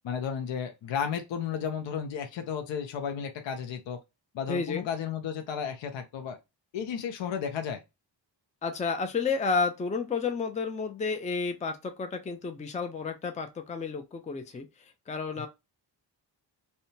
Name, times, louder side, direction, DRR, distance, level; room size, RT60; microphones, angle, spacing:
voice 1, 0.0-4.0 4.3-6.4 6.7-7.8 15.4-15.5, left 7 dB, 80° left, 0.6 m, -33 dB
voice 2, 4.5-4.9 8.6-14.7 15.1-15.5, left 4 dB, 15° left, 0.4 m, -31 dB
2.7 x 2.2 x 2.6 m
cardioid pair, 70°, 45 cm